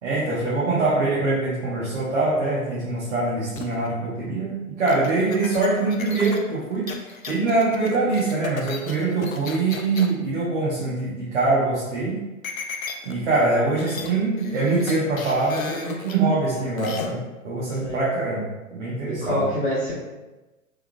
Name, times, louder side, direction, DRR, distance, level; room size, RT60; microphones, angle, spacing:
voice 1, 0.0-6.9 7.3-12.2 13.1-18.5 18.7-19.4, right 3 dB, 60° right, -7 dB, 1.0 m, -23 dB
sound 1, 3.6-3.9 4.9-10.1 12.4-13.1 13.5-13.6 13.8-14.1 14.4-16.1 16.8-17.1, left 5 dB, 80° left, 0.6 m, -35 dB
voice 2, 19.1-19.9, left 1 dB, 20° left, -8 dB, 1.4 m, -25 dB
3.4 x 3.4 x 2.3 m, 1.1 s
figure-of-eight pair, 110°, 40 cm